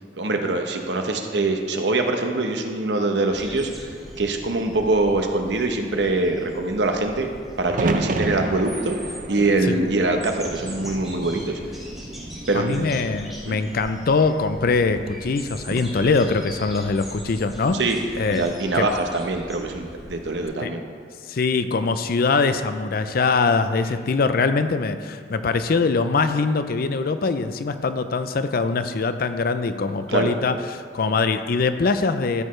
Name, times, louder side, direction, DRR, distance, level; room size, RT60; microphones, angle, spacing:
voice 1, 0.2-3.7 4.2-7.3 7.6-9.0 9.3-11.6 12.5-12.9 13.5-13.6 17.7-18.0 18.3-20.8 30.1-30.3, right 2 dB, 75° right, 4 dB, 0.9 m, -23 dB
sound 1, 3.3-20.4, equal, ahead, 2.6 m, -40 dB
sound 2, 7.7-11.7 12.1-12.9 14.7-15.2, right 2 dB, 50° right, 0.5 m, -30 dB
voice 2, 12.5-17.8 18.2-18.9 20.6-20.7 21.3-32.4, left 4 dB, 55° left, 10 dB, 0.5 m, -22 dB
13.5 x 6.5 x 3.2 m, 2.1 s
head